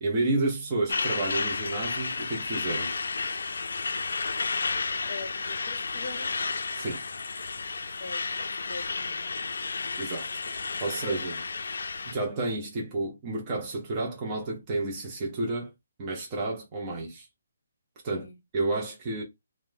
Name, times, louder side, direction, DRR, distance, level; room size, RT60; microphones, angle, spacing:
voice 1, 0.0-3.0 6.8-7.0 10.0-10.4 10.8-11.4 12.0-15.7 16.0-17.3 18.0-19.2, right 2 dB, 15° right, 0.5 m, -31 dB
Truck, 0.9-12.1, left 4 dB, 70° left, 0.4 m, -32 dB
voice 2, 5.0-6.4 8.0-8.2 8.7-9.3 11.0-11.4 18.1-18.4, left 3 dB, 35° left, 0.8 m, -42 dB
3.1 x 2.0 x 3.3 m
hypercardioid pair, 175°, 0 cm